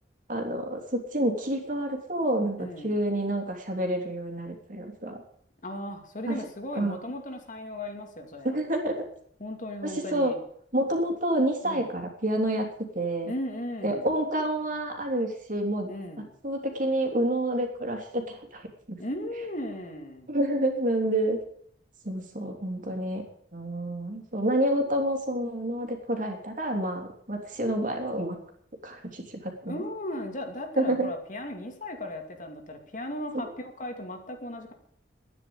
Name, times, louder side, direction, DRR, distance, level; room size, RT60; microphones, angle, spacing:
voice 1, 0.3-5.2 6.3-6.4 6.7-7.0 8.4-9.0 9.8-10.3 10.7-12.7 12.9-13.3 13.8-15.9 16.4-19.0 20.3-21.4 22.0-23.2 23.5-28.4 28.8-29.8 30.8-31.1, right 1 dB, 45° right, 3 dB, 3.1 m, -28 dB
voice 2, 2.6-3.0 5.6-8.6 9.4-10.4 11.6-11.9 13.2-14.1 15.9-16.3 19.0-20.3 29.7-34.7, left 1 dB, 45° left, 4 dB, 2.5 m, -36 dB
11.5 x 10.0 x 8.7 m, 0.64 s
head